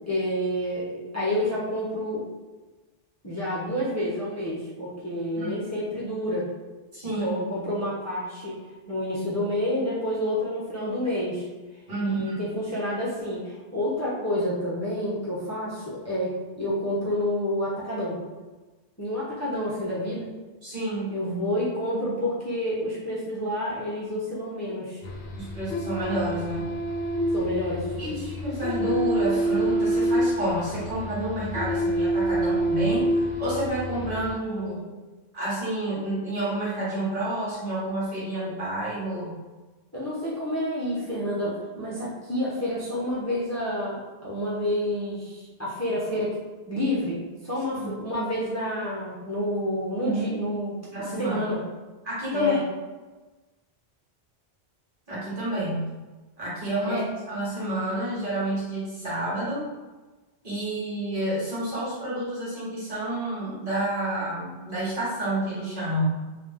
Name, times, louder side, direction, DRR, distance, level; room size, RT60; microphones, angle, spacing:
voice 1, 0.1-2.2 3.2-6.5 7.2-8.6 8.9-11.4 12.0-18.2 19.0-20.3 21.1-25.0 27.3-28.1 34.0-34.9 39.9-46.4 46.7-50.7 51.0-51.6 52.3-52.6 56.8-57.1, left 1 dB, 15° left, -8 dB, 0.7 m, -29 dB
voice 2, 6.9-7.3 11.9-12.4 20.6-21.1 25.3-26.6 28.0-34.8 35.3-39.3 47.7-47.9 50.9-51.4 52.0-52.6 55.1-55.9 56.4-59.7 60.4-66.0, right 1 dB, 55° right, -9 dB, 1.6 m, -29 dB
sound 1, 25.0-34.3, right 1 dB, 70° left, 0.8 m, -27 dB
3.3 x 2.7 x 3.5 m, 1.2 s
omnidirectional pair, 1.1 m